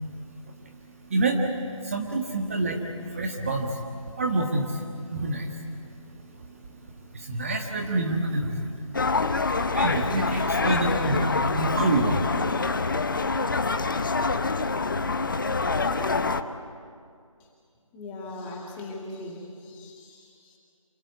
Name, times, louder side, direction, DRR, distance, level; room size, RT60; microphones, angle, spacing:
voice 1, 1.1-1.4 1.8-3.8 4.1-5.6 6.1-6.2 6.5-6.6 7.1-8.7 9.7-13.0, right 2 dB, 25° right, 2 dB, 1.6 m, -27 dB
sound 1, 8.9-16.4, left 3 dB, 40° left, 1.0 m, -26 dB
voice 2, 17.9-20.6, left 2 dB, 10° left, -2 dB, 2.2 m, -40 dB
27.5 x 26.5 x 8.3 m, 2.3 s
figure-of-eight pair, 165°, 17 cm